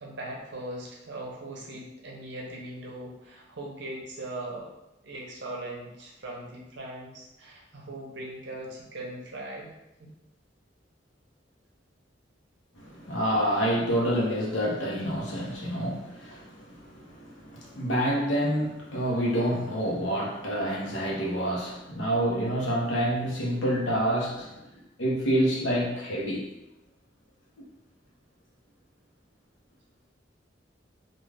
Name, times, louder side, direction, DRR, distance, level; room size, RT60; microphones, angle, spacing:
voice 1, 0.0-4.7 5.0-10.1, right 1 dB, 65° right, -1 dB, 0.7 m, -40 dB
voice 2, 12.8-24.6 25.0-26.5, equal, 85° left, -3 dB, 0.8 m, -28 dB
2.4 x 2.3 x 3.2 m, 0.93 s
head